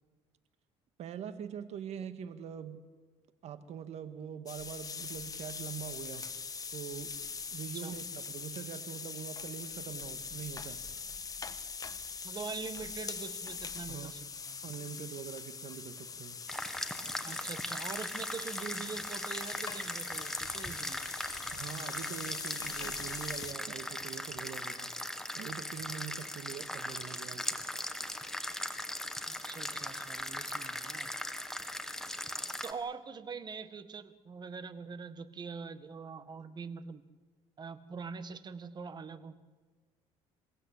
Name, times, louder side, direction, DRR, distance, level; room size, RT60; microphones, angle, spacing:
voice 1, 1.0-2.8 3.4-6.3 6.7-7.2 7.5-10.8 13.9-14.1 14.6-16.4 21.5-24.9 25.4-27.6, right 8 dB, 60° right, 10 dB, 2.0 m, -43 dB
sound 1, 4.5-23.5, left 5 dB, 30° left, 1.4 m, -42 dB
voice 2, 12.2-14.6 17.2-21.0 29.3-31.1 32.6-37.0 37.6-39.3, right 5 dB, 35° right, 11 dB, 1.8 m, -43 dB
sound 2, 16.5-32.7, left 1 dB, 5° left, 1.9 m, -39 dB
28.0 x 16.0 x 8.6 m, 1.4 s
cardioid pair, 100°, 12 cm